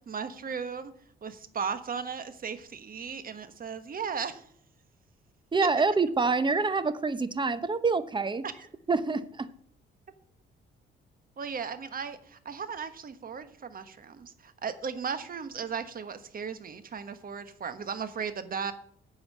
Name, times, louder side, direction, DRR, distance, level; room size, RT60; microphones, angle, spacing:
voice 1, 0.1-0.9 1.2-4.4 8.4-8.7 11.4-18.7, right 6 dB, 45° right, 11 dB, 1.3 m, -36 dB
voice 2, 5.5-8.4 8.9-9.5, right 4 dB, 25° right, 14 dB, 0.9 m, -26 dB
9.8 x 5.6 x 8.4 m, 0.64 s
cardioid pair, 90°, 20 cm